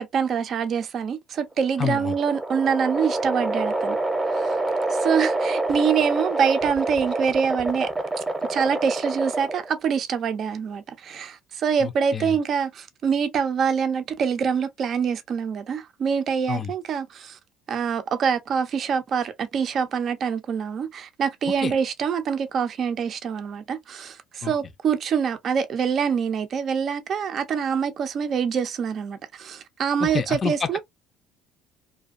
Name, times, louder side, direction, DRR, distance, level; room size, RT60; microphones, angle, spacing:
voice 1, 0.0-4.0 4.3-4.6 4.9-7.9 8.5-17.4 17.7-30.8, right 7 dB, 50° right, 0.4 m, -25 dB
sound 1, 1.5-9.8, right 2 dB, 15° right, 0.7 m, -27 dB
voice 2, 1.8-2.1 11.8-12.3 16.5-16.7 21.6-21.7 24.4-24.5 30.0-30.5, left 7 dB, 40° left, 0.4 m, -28 dB
2.5 x 2.2 x 2.4 m
hypercardioid pair, 65°, 0 cm